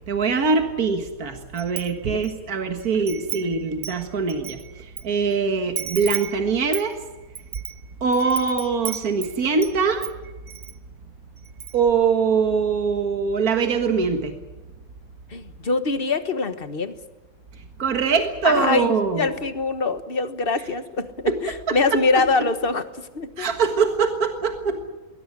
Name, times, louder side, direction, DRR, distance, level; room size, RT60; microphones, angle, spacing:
voice 1, 0.1-7.0 8.0-10.1 11.7-14.4 17.8-19.3 21.3-21.4 21.7-22.2 23.4-24.9, right 5 dB, 75° right, 5 dB, 2.2 m, -23 dB
Wind chime, 1.6-2.4 2.8-5.0 5.3-5.4 5.8-9.8 10.0-10.7 11.1-11.2 11.5-11.9, right 8 dB, 45° right, 1.0 m, -34 dB
voice 2, 15.3-16.9 18.4-23.5, left 3 dB, 40° left, 10 dB, 1.5 m, -24 dB
21.5 x 18.0 x 9.7 m, 1.2 s
omnidirectional pair, 1.6 m